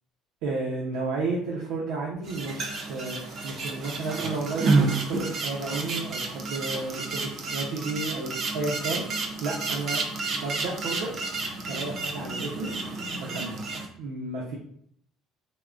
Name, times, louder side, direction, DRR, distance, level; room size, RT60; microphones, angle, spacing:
voice 1, 0.4-10.0 10.3-11.1 11.7-12.8 13.1-13.6 14.0-14.6, right 3 dB, 85° right, -3 dB, 0.5 m, -32 dB
sound 1, 2.2-7.0, left 3 dB, 40° left, 0.6 m, -50 dB
sound 2, 2.2-13.9, right 3 dB, 40° right, 0.4 m, -30 dB
3.5 x 2.0 x 2.3 m, 0.66 s
cardioid pair, 160°, 0 cm